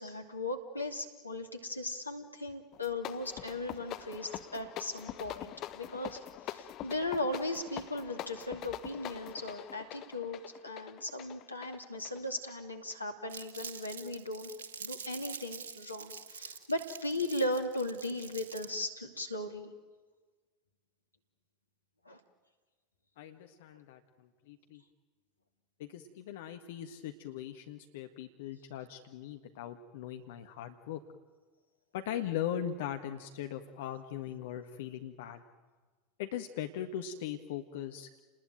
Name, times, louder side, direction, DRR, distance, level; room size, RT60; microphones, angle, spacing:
voice 1, 0.0-6.2 6.5-14.5 14.8-19.7 22.0-22.2, left 1 dB, 90° left, 4 dB, 2.5 m, -37 dB
sound 1, 2.7-13.0, left 13 dB, 40° left, 1.2 m, -44 dB
Crumpling crinkling, 13.3-18.8, right 5 dB, 65° right, 2.4 m, -45 dB
voice 2, 23.2-24.8 25.8-31.0 31.9-35.4 36.2-38.2, left 10 dB, 60° left, 6 dB, 1.5 m, -40 dB
30.0 x 20.0 x 9.1 m, 1.4 s
figure-of-eight pair, 80°, 0 cm